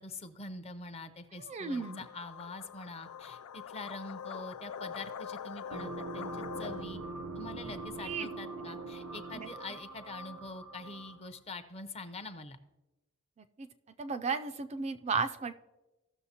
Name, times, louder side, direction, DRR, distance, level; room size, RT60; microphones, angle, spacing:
voice 1, 0.0-7.0 7.3-12.6, left 2 dB, 30° left, 10 dB, 0.6 m, -45 dB
voice 2, 1.4-2.1 7.7-8.3 9.4-9.5 13.6-13.7 14.0-15.5, right 4 dB, 30° right, 9 dB, 0.3 m, -34 dB
sound 1, 1.6-6.8, left 7 dB, 90° left, 0.4 m, -44 dB
sound 2, 5.7-11.3, right 2 dB, 90° right, 0.7 m, -42 dB
16.0 x 6.4 x 2.8 m, 1.1 s
head